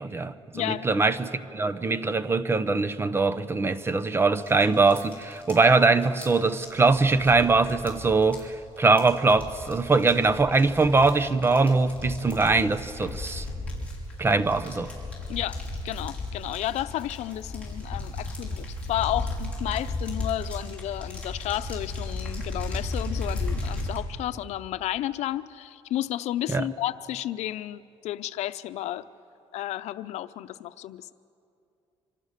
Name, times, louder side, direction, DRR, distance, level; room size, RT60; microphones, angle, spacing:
voice 1, 0.0-13.5 14.2-14.9 26.5-26.7, right 3 dB, 20° right, 0.9 m, -22 dB
voice 2, 0.5-0.9 15.3-29.1 29.5-31.1, left 13 dB, 90° left, 0.7 m, -32 dB
sound 1, 4.4-24.0, left 2 dB, 10° left, 5.4 m, -35 dB
26.5 x 26.0 x 6.7 m
cardioid pair, 135°, 11 cm